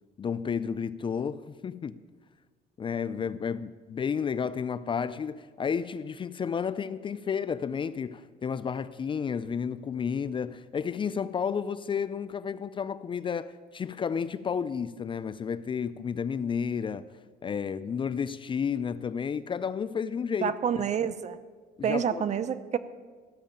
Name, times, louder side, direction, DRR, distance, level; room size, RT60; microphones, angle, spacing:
voice 1, 0.2-2.0 2.8-17.0 17.4-20.5 21.8-22.2, left 6 dB, 30° left, 0.4 m, -31 dB
voice 2, 20.4-21.4 21.8-22.8, right 8 dB, 45° right, 0.7 m, -28 dB
14.5 x 6.4 x 8.8 m
cardioid pair, 110°, 17 cm